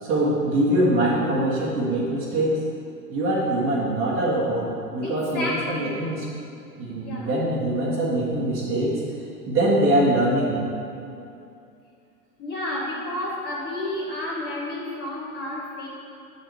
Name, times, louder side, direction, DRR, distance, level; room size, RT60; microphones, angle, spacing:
voice 1, 0.0-2.6 3.1-6.2 6.8-9.0 9.5-10.6, right 1 dB, 25° right, -6 dB, 1.6 m, -23 dB
voice 2, 5.0-6.1 7.0-7.3 12.4-15.9, left 1 dB, 20° left, -6 dB, 1.8 m, -31 dB
8.2 x 4.1 x 4.8 m, 2.6 s
hypercardioid pair, 110°, 47 cm